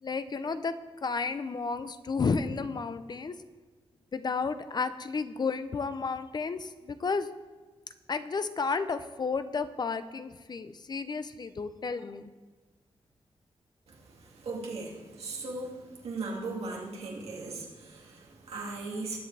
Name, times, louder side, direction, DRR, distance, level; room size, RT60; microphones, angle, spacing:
voice 1, 0.0-3.4 4.1-7.3 8.1-12.3, left 4 dB, 45° left, 11 dB, 0.6 m, -32 dB
voice 2, 13.9-19.2, right 3 dB, 90° right, -2 dB, 2.3 m, -38 dB
19.5 x 7.6 x 3.4 m, 1.4 s
wide cardioid pair, 100°, 10 cm